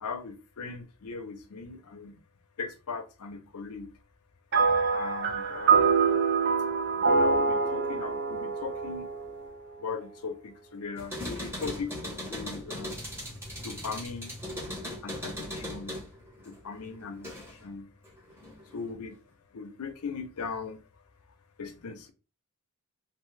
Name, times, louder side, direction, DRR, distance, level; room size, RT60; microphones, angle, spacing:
voice 1, 0.0-2.1 2.6-3.9 4.9-5.9 7.2-9.1 9.8-12.9 13.6-14.3 15.0-16.0 16.5-17.3 17.6-17.8 18.7-19.2 19.5-20.8 21.6-22.1, left 5 dB, 80° left, 0.6 m, -39 dB
sound 1, 4.5-10.0, right 5 dB, 50° right, 0.5 m, -25 dB
sound 2, 11.0-17.7 18.0-18.9, left 1 dB, 10° right, 1.1 m, -39 dB
2.7 x 2.6 x 3.1 m
head